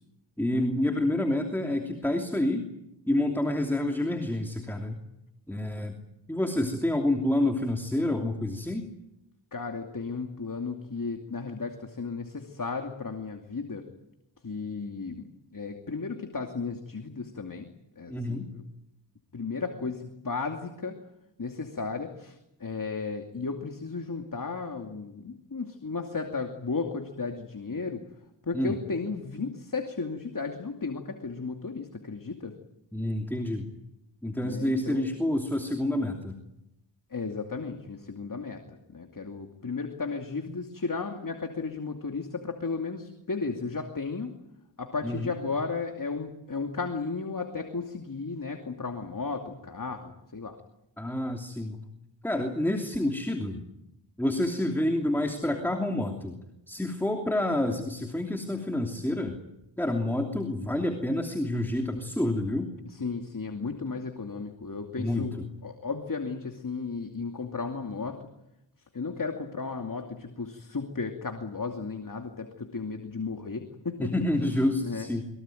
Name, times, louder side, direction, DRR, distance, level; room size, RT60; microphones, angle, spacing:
voice 1, 0.4-2.7 3.1-5.0 5.5-6.0 6.3-8.9 18.1-18.5 28.5-28.8 32.9-33.7 34.2-36.3 45.0-45.3 51.0-51.8 52.2-53.6 54.2-56.4 56.7-59.4 59.8-62.7 65.0-65.5 74.0-75.2, left 1 dB, 5° left, 3 dB, 3.0 m, -28 dB
voice 2, 9.5-13.9 14.4-17.7 18.0-18.6 19.3-21.0 21.4-28.0 28.4-32.5 34.4-35.2 37.1-44.4 44.8-50.6 62.8-65.4 65.6-68.3 68.9-74.1 74.8-75.1, left 4 dB, 45° left, 4 dB, 2.6 m, -34 dB
23.5 x 22.5 x 9.2 m, 0.87 s
cardioid pair, 60°, 46 cm